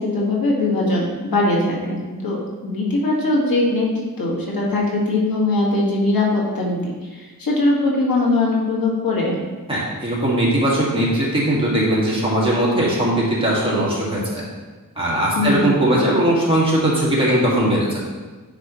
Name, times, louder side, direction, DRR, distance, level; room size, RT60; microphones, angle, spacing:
voice 1, 0.0-9.4 15.3-15.8, left 2 dB, 85° left, -3 dB, 1.6 m, -21 dB
voice 2, 9.7-14.4 15.0-18.0, right 1 dB, 15° right, -6 dB, 1.9 m, -19 dB
9.8 x 4.9 x 3.0 m, 1.3 s
wide cardioid pair, 135°, 35 cm